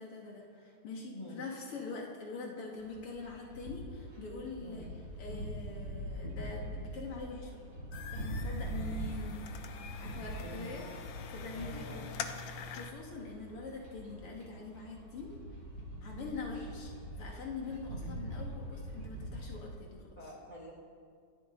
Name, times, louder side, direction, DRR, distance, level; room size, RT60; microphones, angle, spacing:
voice 1, 0.0-4.9 5.2-7.6 8.1-9.4 10.0-10.8 11.3-12.1 12.7-15.4 16.0-20.1, left 3 dB, 80° left, -1 dB, 2.8 m, -44 dB
sound 1, 2.8-19.7, equal, 40° right, 6.1 m, -43 dB
sound 2, 7.9-12.9, left 6 dB, 65° left, 1.5 m, -45 dB
voice 2, 10.4-10.8 11.5-12.2 20.2-20.7, equal, 20° left, -6 dB, 5.3 m, -47 dB
27.0 x 13.0 x 3.9 m, 2.2 s
omnidirectional pair, 2.4 m